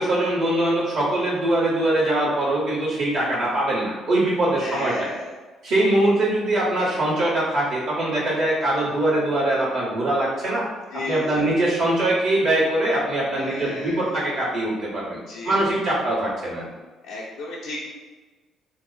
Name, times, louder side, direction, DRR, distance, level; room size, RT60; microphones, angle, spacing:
voice 1, 0.0-5.1 5.6-10.6 11.1-15.2 15.4-16.7, right 1 dB, 75° right, -10 dB, 1.1 m, -22 dB
voice 2, 4.6-5.3 10.9-11.5 13.3-14.1 15.3-15.7 17.0-17.8, left 2 dB, 90° left, -6 dB, 0.5 m, -34 dB
2.8 x 2.0 x 3.9 m, 1.3 s
supercardioid pair, 75°, 0 cm